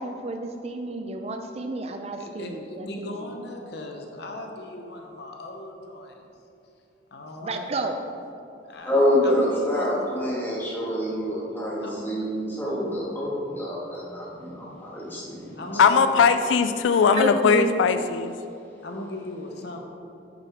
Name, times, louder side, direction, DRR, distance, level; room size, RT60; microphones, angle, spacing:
voice 1, 0.0-3.1 7.4-8.0 17.2-17.7, right 2 dB, 35° right, 5 dB, 0.4 m, -30 dB
voice 2, 2.2-6.3 7.1-7.7 8.6-10.1 11.8-12.0 15.6-16.3 18.8-19.8, left 1 dB, 60° left, 2 dB, 0.9 m, -38 dB
voice 3, 8.8-15.6, equal, 10° left, -7 dB, 1.8 m, -26 dB
voice 4, 15.8-18.3, left 6 dB, 80° left, 10 dB, 0.3 m, -19 dB
8.9 x 7.0 x 3.6 m, 2.8 s
head